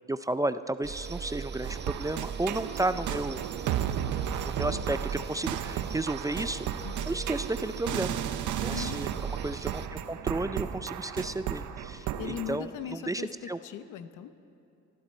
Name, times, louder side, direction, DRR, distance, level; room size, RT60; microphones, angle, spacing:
voice 1, 0.1-3.5 3.8-3.9 4.5-6.7 7.1-8.2 8.6-9.1 9.4-13.6, right 2 dB, 10° right, 12 dB, 0.4 m, -33 dB
sound 1, 0.8-9.9, right 6 dB, 35° right, 0.7 m, -39 dB
sound 2, 1.6-12.6, right 10 dB, 80° right, 0.8 m, -34 dB
voice 2, 6.8-7.2 8.7-9.4 11.9-13.3 13.6-14.5, left 9 dB, 85° left, 12 dB, 0.8 m, -40 dB
24.5 x 13.5 x 4.4 m, 2.7 s
cardioid pair, 90°, 30 cm